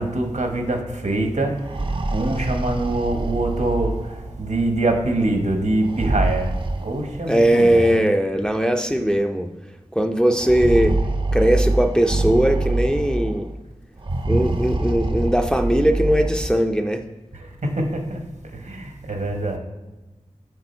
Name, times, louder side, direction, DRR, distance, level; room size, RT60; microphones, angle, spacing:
voice 1, 0.0-8.0 17.3-19.6, right 2 dB, 75° right, 4 dB, 1.0 m, -24 dB
sound 1, 1.6-4.4 5.8-7.5 8.5-8.6 8.9-9.0 10.3-13.4 14.0-16.6, right 2 dB, 45° right, 0.5 m, -25 dB
voice 2, 7.3-9.5 9.9-11.0 11.3-13.5 14.3-17.0, right 1 dB, 5° left, 4 dB, 0.5 m, -19 dB
7.0 x 3.7 x 4.3 m, 1.1 s
wide cardioid pair, 60°, 13 cm